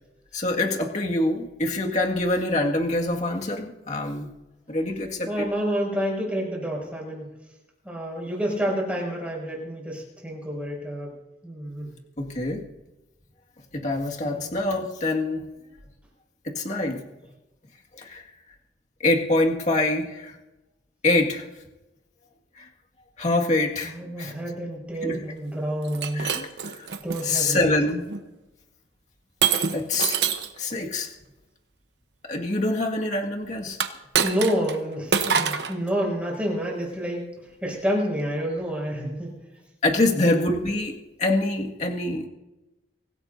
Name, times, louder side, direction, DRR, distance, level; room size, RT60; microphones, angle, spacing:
voice 1, 0.3-4.3 4.7-5.5 12.2-12.6 13.7-15.4 16.4-17.0 18.0-18.2 19.0-20.3 21.0-21.5 22.6-22.7 23.2-23.9 24.2-24.3 25.0-25.2 26.1-26.5 26.7-26.9 27.2-28.0 29.7-30.2 30.6-31.1 32.2-33.8 39.8-40.9 41.2-42.3, left 2 dB, 40° left, 0 dB, 2.0 m, -25 dB
voice 2, 5.3-7.3 7.8-11.1 11.4-11.9 14.2-14.5 23.8-26.4 27.0-27.7 34.2-37.3 37.6-39.3 40.2-40.3, equal, 5° right, -2 dB, 6.4 m, -29 dB
Shatter, 25.9-27.2 27.9-28.2 29.4-30.6 33.7-34.8 35.1-35.8, right 7 dB, 75° right, 1.0 m, -25 dB
24.5 x 17.0 x 2.7 m, 1.0 s
head